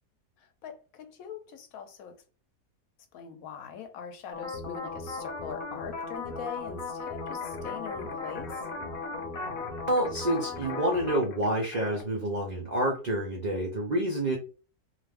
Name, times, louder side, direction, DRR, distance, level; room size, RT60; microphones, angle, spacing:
voice 1, 0.4-2.1 3.1-8.6, left 7 dB, 70° left, 1.0 m, -42 dB
sound 1, 4.3-11.2, left 3 dB, 40° left, 0.8 m, -37 dB
sound 2, 7.1-12.0, left 6 dB, 90° left, 1.2 m, -45 dB
voice 2, 9.9-14.4, right 1 dB, 70° right, 0.4 m, -28 dB
2.5 x 2.4 x 3.3 m
omnidirectional pair, 1.6 m